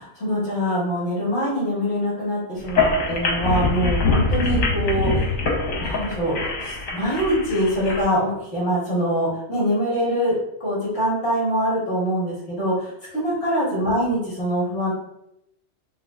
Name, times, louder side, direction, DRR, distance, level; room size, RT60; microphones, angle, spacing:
voice 1, 0.0-5.3 5.8-6.3 6.6-10.3 10.6-14.9, equal, 55° left, -7 dB, 1.5 m, -24 dB
sound 1, 2.6-8.0, left 3 dB, 80° left, 1.2 m, -23 dB
6.4 x 2.3 x 2.3 m, 0.82 s
omnidirectional pair, 1.4 m